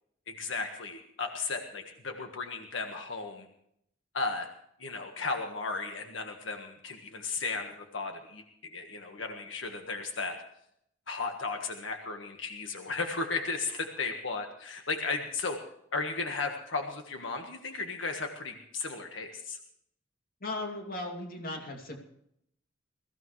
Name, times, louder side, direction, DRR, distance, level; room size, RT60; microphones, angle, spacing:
voice 1, 0.3-3.5 4.1-4.5 4.8-10.4 11.1-15.7 15.9-19.6, left 4 dB, 90° left, 5 dB, 1.6 m, -35 dB
voice 2, 20.4-22.0, left 2 dB, 50° left, 3 dB, 2.7 m, -37 dB
22.0 x 15.5 x 3.2 m, 0.72 s
head